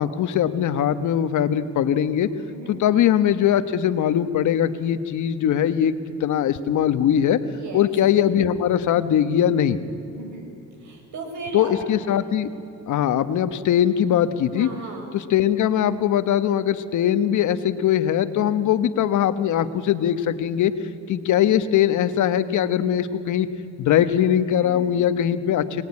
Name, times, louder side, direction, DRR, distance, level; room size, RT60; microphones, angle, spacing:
voice 1, 0.0-2.3 2.7-5.9 6.2-7.4 7.7-9.8 11.5-12.5 12.9-14.7 15.1-20.7 21.1-23.5 23.8-25.8, left 10 dB, 75° left, 11 dB, 1.4 m, -21 dB
voice 2, 2.5-2.8 7.5-7.8 10.1-10.5 10.8-11.7 14.5-15.2 24.6-24.9, right 3 dB, 70° right, 3 dB, 6.4 m, -36 dB
24.0 x 20.0 x 9.8 m, 2.6 s
cardioid pair, 90°, 30 cm